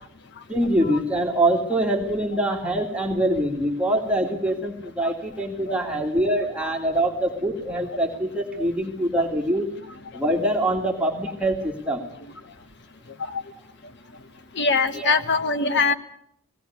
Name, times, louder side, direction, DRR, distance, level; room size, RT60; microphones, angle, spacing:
voice 1, 0.5-9.7 10.1-12.0 14.9-15.2, right 1 dB, 5° right, 0 dB, 2.0 m, -24 dB
voice 2, 14.5-15.9, left 4 dB, 60° left, 10 dB, 1.3 m, -23 dB
18.0 x 17.5 x 8.3 m, 0.70 s
head